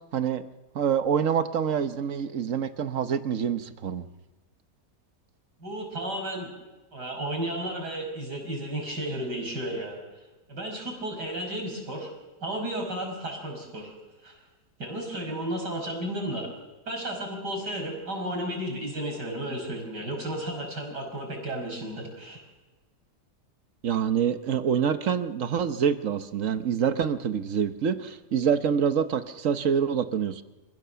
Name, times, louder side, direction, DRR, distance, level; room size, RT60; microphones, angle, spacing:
voice 1, 0.1-0.4 0.7-4.0 23.8-30.4, right 7 dB, 55° right, 10 dB, 1.3 m, -26 dB
voice 2, 5.6-6.5 6.9-10.0 10.5-12.1 12.4-13.9 14.2-14.4 14.8-16.5 16.9-22.4, right 1 dB, 80° right, 2 dB, 6.5 m, -33 dB
28.0 x 16.0 x 6.9 m, 1.2 s
omnidirectional pair, 1.8 m